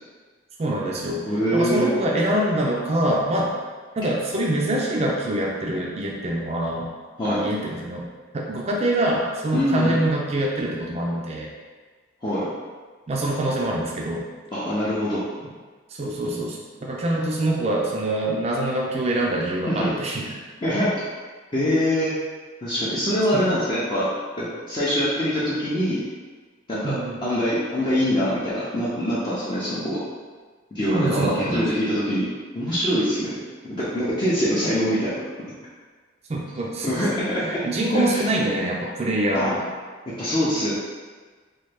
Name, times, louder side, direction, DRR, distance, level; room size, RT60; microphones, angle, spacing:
voice 1, 0.6-1.2 1.5-3.5 3.9-6.9 7.2-8.1 8.3-11.5 13.1-14.2 15.9-20.4 23.3-23.6 26.8-27.2 30.9-31.7 36.3-37.0 37.4-39.6, right 1 dB, 35° right, -2 dB, 0.4 m, -25 dB
voice 2, 1.3-1.9 7.2-7.5 9.5-9.9 12.2-12.5 14.5-15.3 19.7-19.9 20.6-20.9 21.5-22.1 22.6-24.1 24.4-26.0 26.7-30.0 30.7-33.3 33.6-35.2 36.8-37.4 37.9-38.2 39.3-39.5 40.2-40.7, equal, 25° left, -10 dB, 0.5 m, -24 dB
3.1 x 2.2 x 3.3 m, 1.4 s
head